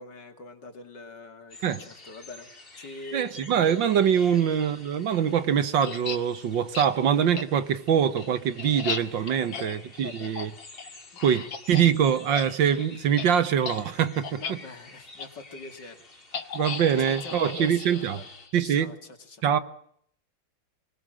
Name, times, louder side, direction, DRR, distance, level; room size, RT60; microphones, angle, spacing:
voice 1, 0.0-2.5 2.8-3.5 4.3-4.4 9.3-10.4 14.4-16.0 16.9-18.3 18.6-19.4, left 3 dB, 60° left, 3.0 m, -44 dB
sound 1, 1.5-18.5, left 2 dB, 30° left, 3.0 m, -50 dB
voice 2, 3.1-10.5 11.2-14.6 16.5-18.2 18.5-18.9 19.4-19.6, right 8 dB, 70° right, 1.9 m, -24 dB
sound 2, 5.8-6.2 6.7-6.9 7.4-7.5 7.9-11.9 12.2-12.5 12.7-12.9 13.2-13.3 13.6-13.8 14.2-14.5 15.2-15.3 16.3-18.7, left 6 dB, 75° left, 2.5 m, -36 dB
25.0 x 20.0 x 7.6 m
omnidirectional pair, 2.1 m